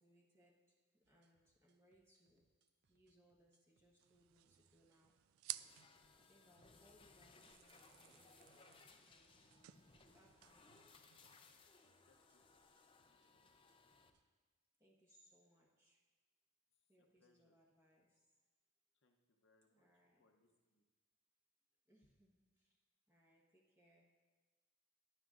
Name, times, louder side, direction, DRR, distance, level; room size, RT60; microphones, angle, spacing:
voice 1, 0.0-2.4 2.9-5.2 6.2-9.5 10.1-10.7 14.8-16.0 16.9-18.3 19.7-20.3 21.9-24.1, equal, 15° right, -3 dB, 1.2 m, -73 dB
sound 1, 1.0-14.2, right 4 dB, 55° right, 0.7 m, -83 dB
sound 2, 4.0-11.6, right 16 dB, 80° right, 0.3 m, -56 dB
sound 3, 5.5-14.1, left 4 dB, 25° left, 0.6 m, -66 dB
voice 2, 12.1-12.7 13.1-13.6 17.0-17.6 18.9-19.9 20.2-20.8, left 3 dB, 55° left, 4 dB, 0.8 m, -78 dB
15.0 x 10.5 x 2.5 m, 1.3 s
head